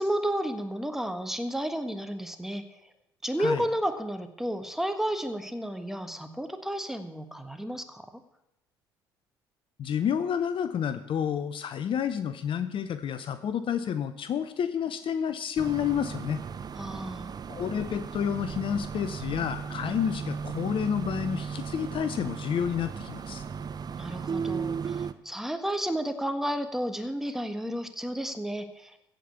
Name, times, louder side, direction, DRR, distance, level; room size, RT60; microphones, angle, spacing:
voice 1, 0.0-2.7 3.2-8.1 16.7-17.4 24.0-29.0, equal, 5° right, 8 dB, 1.5 m, -32 dB
voice 2, 9.8-16.4 17.5-23.4, left 8 dB, 45° left, 12 dB, 0.7 m, -30 dB
sound 1, 15.6-25.1, right 6 dB, 35° right, 0.7 m, -36 dB
15.0 x 5.3 x 8.1 m, 0.88 s
figure-of-eight pair, 55°, 12 cm